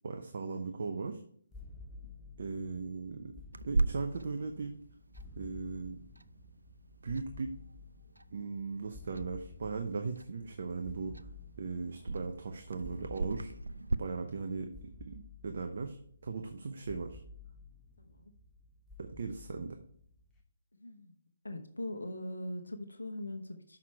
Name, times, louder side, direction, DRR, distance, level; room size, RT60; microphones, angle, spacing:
voice 1, 0.0-1.2 2.4-3.3 3.7-4.8 5.4-6.0 7.0-7.6 8.3-11.2 11.6-13.5 14.0-17.2 19.0-19.8, right 4 dB, 55° right, 5 dB, 0.8 m, -38 dB
sound 1, 1.5-20.4, left 3 dB, 10° left, 1.2 m, -53 dB
Clock, 3.5-14.0, right 3 dB, 80° right, 0.3 m, -39 dB
voice 2, 18.0-18.3 20.8-21.1 21.4-23.8, left 1 dB, 80° left, 6 dB, 0.9 m, -41 dB
6.4 x 5.8 x 4.6 m, 0.63 s
figure-of-eight pair, 140°, 0 cm